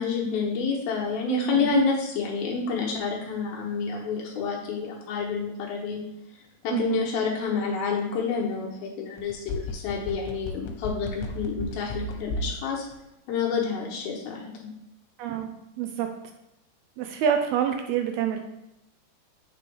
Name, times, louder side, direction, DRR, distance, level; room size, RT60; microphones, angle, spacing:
voice 1, 0.0-6.0 6.6-12.9 13.3-14.7, left 5 dB, 70° left, -2 dB, 2.8 m, -28 dB
voice 2, 1.3-1.7 6.7-7.0 15.2-15.5 15.8-16.1 17.0-18.4, right 9 dB, 80° right, 6 dB, 2.4 m, -26 dB
sound 1, 9.2-12.6 12.9-13.0, left 2 dB, 85° left, 3.0 m, -32 dB
8.7 x 5.2 x 3.3 m, 0.90 s
omnidirectional pair, 4.7 m